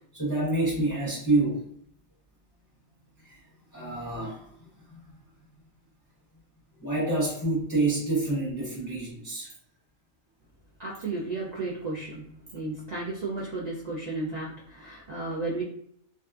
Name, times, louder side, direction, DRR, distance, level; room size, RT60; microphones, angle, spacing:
voice 1, 0.1-1.7 3.2-3.4 3.7-5.0 6.8-9.5, right 2 dB, 20° left, -7 dB, 0.7 m, -28 dB
voice 2, 10.8-15.6, right 3 dB, 70° right, -5 dB, 0.4 m, -33 dB
2.6 x 2.3 x 2.3 m, 0.67 s
omnidirectional pair, 1.4 m